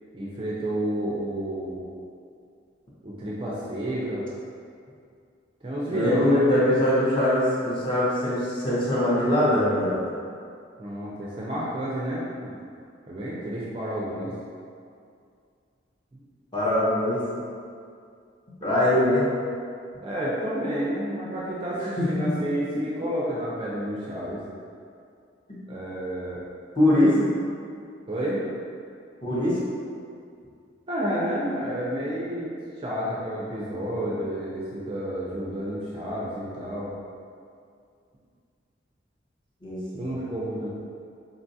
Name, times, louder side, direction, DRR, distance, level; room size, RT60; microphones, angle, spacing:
voice 1, 0.1-1.8 3.0-4.3 5.6-6.8 10.8-12.3 13.1-14.3 16.1-16.2 20.0-24.4 25.7-26.4 28.1-28.4 30.9-32.5 32.8-36.9 40.0-40.7, right 1 dB, 25° right, -6 dB, 0.3 m, -30 dB
voice 2, 5.9-10.1 16.5-17.2 18.6-19.2 21.8-22.3 22.7-22.8 25.5-25.6 26.8-27.3 29.2-29.6 39.6-40.1, left 1 dB, 25° left, -9 dB, 0.7 m, -22 dB
3.8 x 2.3 x 2.6 m, 2.3 s
head